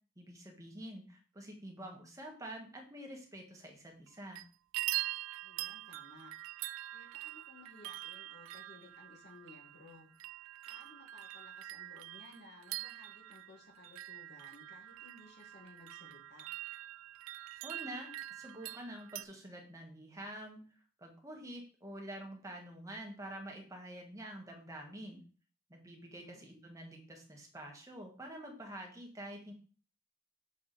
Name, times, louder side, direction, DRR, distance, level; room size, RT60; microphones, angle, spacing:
voice 1, 0.2-4.4 17.6-20.6 21.0-25.2 25.7-29.5, right 1 dB, 15° right, 1 dB, 1.6 m, -47 dB
sound 1, 4.1-4.4 4.7-19.2, right 16 dB, 70° right, 0.3 m, -44 dB
voice 2, 5.4-6.3 6.9-10.1 10.7-16.5 26.2-26.5, left 3 dB, 55° left, 1 dB, 1.9 m, -58 dB
6.7 x 4.8 x 4.1 m, 0.39 s
head